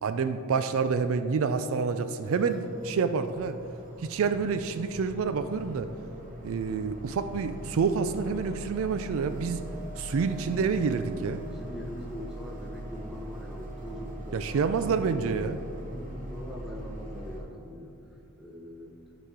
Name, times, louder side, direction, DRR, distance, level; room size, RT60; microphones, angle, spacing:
voice 1, 0.0-3.6 4.0-5.9 6.4-9.7 10.0-11.4 14.3-15.6, right 5 dB, 65° right, 10 dB, 0.3 m, -28 dB
sound 1, 2.2-17.4, right 1 dB, 35° right, 1.5 m, -41 dB
voice 2, 10.2-10.6 11.5-15.3 15.6-17.9 18.4-18.9, left 1 dB, ahead, -1 dB, 0.9 m, -42 dB
12.0 x 4.9 x 3.7 m, 2.7 s
head